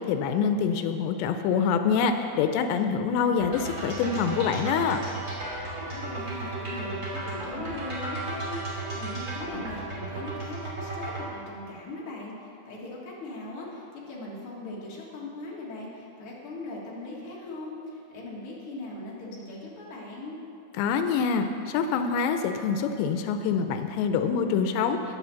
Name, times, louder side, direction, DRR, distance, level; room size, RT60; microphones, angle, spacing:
voice 1, 0.1-5.0 20.8-25.0, left 6 dB, 85° left, 7 dB, 2.7 m, -25 dB
sound 1, 3.4-11.3, right 2 dB, 25° right, 2.3 m, -34 dB
voice 2, 5.8-20.4, left 2 dB, 55° left, -5 dB, 1.6 m, -39 dB
9.6 x 7.7 x 6.9 m, 2.7 s
omnidirectional pair, 5.1 m